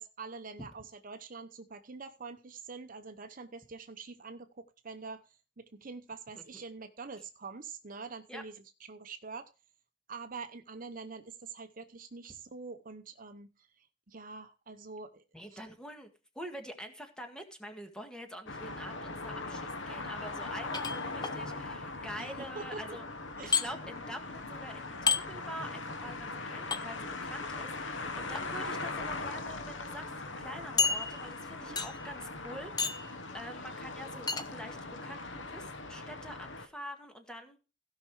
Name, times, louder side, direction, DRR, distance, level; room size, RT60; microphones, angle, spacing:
voice 1, 0.0-8.6 8.9-9.5 10.1-15.2 15.5-15.6 20.0-20.3 22.2-23.0 23.4-23.6 31.6-31.8, right 4 dB, 45° right, 0.8 m, -45 dB
voice 2, 15.3-23.0 23.4-37.6, equal, 5° left, 1.8 m, -46 dB
sound 1, 18.5-36.7, left 3 dB, 75° left, 1.4 m, -40 dB
sound 2, 20.7-21.4 23.5-23.7 25.1-25.2 26.7-26.8 28.2-28.4 29.2-29.3 29.6-29.7 30.8-31.4 31.8-32.1 32.8-33.1 34.3-34.5, left 5 dB, 20° left, 0.8 m, -30 dB
16.0 x 5.7 x 4.7 m
head